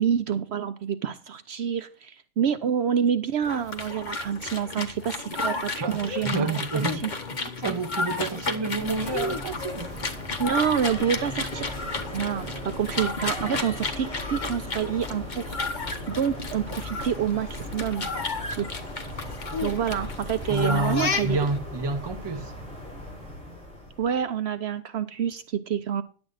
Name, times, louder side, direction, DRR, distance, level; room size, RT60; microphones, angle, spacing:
voice 1, 0.0-7.1 10.4-11.7 12.1-15.6 16.1-18.1 18.6-18.7 19.6-21.4 24.0-26.0, right 8 dB, 65° right, 0.8 m, -27 dB
sound 1, 3.4-21.6, left 3 dB, 40° left, 1.1 m, -33 dB
voice 2, 5.8-7.0 7.4-9.9 20.5-22.5, right 3 dB, 25° right, 0.8 m, -29 dB
sound 2, 8.7-24.2, left 1 dB, 5° left, 4.7 m, -38 dB
10.5 x 7.8 x 4.0 m
omnidirectional pair, 1.3 m